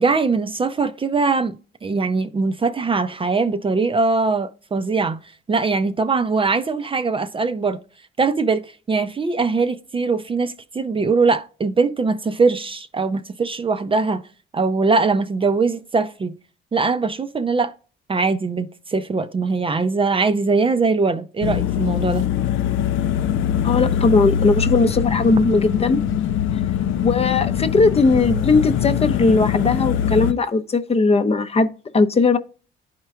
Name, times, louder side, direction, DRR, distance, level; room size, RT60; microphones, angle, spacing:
voice 1, 0.0-1.6 1.8-5.2 5.5-7.8 8.2-14.2 14.5-16.3 16.7-17.7 18.1-22.3, right 4 dB, 25° right, 0.5 m, -21 dB
sound 1, 21.4-30.3, left 9 dB, 80° left, 0.4 m, -22 dB
voice 2, 23.6-26.0 27.0-32.4, left 3 dB, 30° left, 0.6 m, -18 dB
11.5 x 4.4 x 2.4 m
cardioid pair, 90°, 20 cm